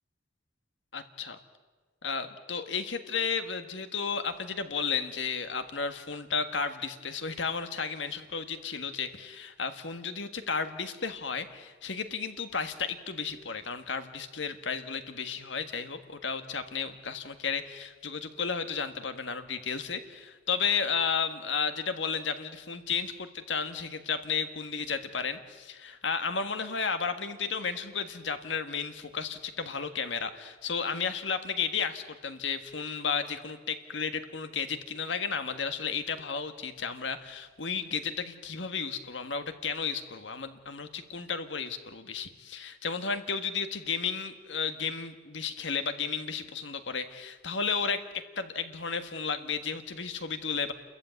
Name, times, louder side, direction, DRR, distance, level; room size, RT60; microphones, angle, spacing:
voice 1, 0.9-1.4 2.0-50.7, left 5 dB, 85° left, 9 dB, 1.6 m, -33 dB
29.0 x 14.5 x 9.2 m, 1.4 s
head